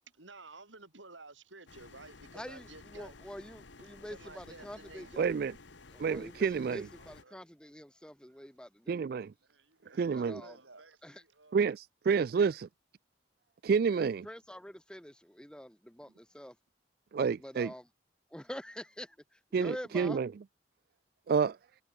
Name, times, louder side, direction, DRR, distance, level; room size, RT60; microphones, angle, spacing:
voice 1, 0.1-3.1 3.8-5.3 7.0-7.4 8.3-8.5 8.9-9.1 9.4-11.6, right 3 dB, 85° right, 6.2 m, -53 dB
sound 1, 1.7-7.2, left 3 dB, 75° left, 1.3 m, -54 dB
voice 2, 2.3-5.3 5.9-9.0 10.1-10.6 11.0-11.2 13.9-16.5 17.4-17.8 18.3-19.1 19.5-20.2, equal, 5° left, 1.3 m, -46 dB
voice 3, 5.2-5.6 6.0-6.9 8.9-9.3 10.0-10.4 11.5-12.7 13.6-14.3 17.1-17.7 19.5-20.3 21.3-21.6, right 5 dB, 55° right, 0.3 m, -29 dB
head